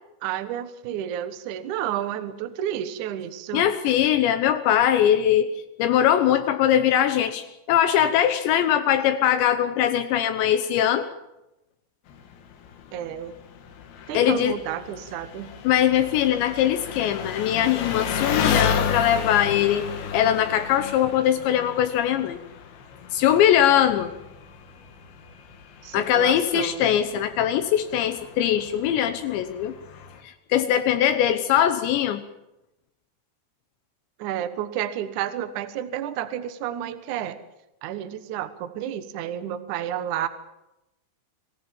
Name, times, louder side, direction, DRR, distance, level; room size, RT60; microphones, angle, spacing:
voice 1, 0.2-3.6 12.9-13.4 14.1-15.5 25.8-26.9 34.2-37.4 37.8-40.3, right 11 dB, 70° right, 11 dB, 1.9 m, -31 dB
voice 2, 3.5-5.5 5.8-11.1 14.1-14.5 15.6-19.9 20.1-22.4 23.1-24.1 25.9-29.7 30.2-32.2, left 10 dB, 80° left, 9 dB, 3.2 m, -21 dB
Engine, 12.1-30.2, left 7 dB, 65° left, 3.5 m, -33 dB
26.0 x 17.0 x 7.3 m, 0.91 s
omnidirectional pair, 5.3 m